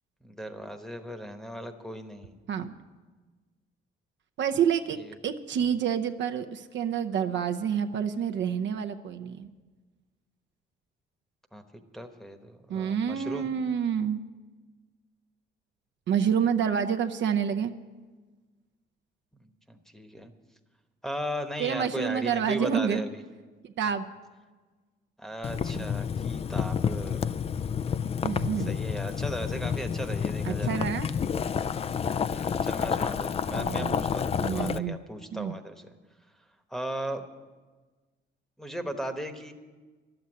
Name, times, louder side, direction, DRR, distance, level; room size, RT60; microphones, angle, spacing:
voice 1, 0.2-2.4 5.0-5.2 11.5-11.6 11.9-13.5 19.4-20.3 21.0-23.2 25.2-27.3 28.7-30.8 32.3-35.9 36.7-37.2 38.6-39.5, equal, ahead, 4 dB, 1.1 m, -37 dB
voice 2, 4.4-5.0 5.2-9.5 12.7-14.2 16.1-17.7 21.6-23.0 23.6-24.1 28.2-28.8 30.4-31.1 33.5-34.0 34.4-35.0 35.3-35.5, right 8 dB, 65° right, 6 dB, 0.7 m, -28 dB
Boiling, 25.4-34.8, left 7 dB, 30° left, 0.3 m, -29 dB
11.5 x 7.9 x 9.8 m, 1.3 s
cardioid pair, 90°, 20 cm